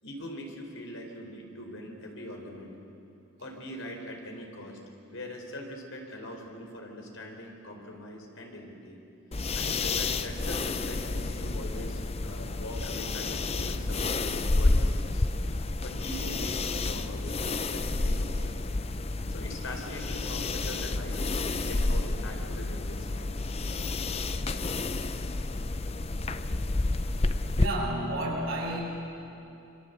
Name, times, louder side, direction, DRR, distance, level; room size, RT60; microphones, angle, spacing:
voice 1, 0.0-2.7 3.4-4.8 5.1-9.0 9.5-15.3 15.8-17.4 17.7-18.6 19.3-23.5, left 1 dB, 70° left, 2 dB, 4.5 m, -42 dB
sound 1, 9.3-27.7, left 2 dB, 30° left, 0.6 m, -30 dB
voice 2, 27.6-28.8, right 1 dB, 70° right, -2 dB, 7.2 m, -31 dB
27.0 x 25.0 x 8.2 m, 2.8 s
head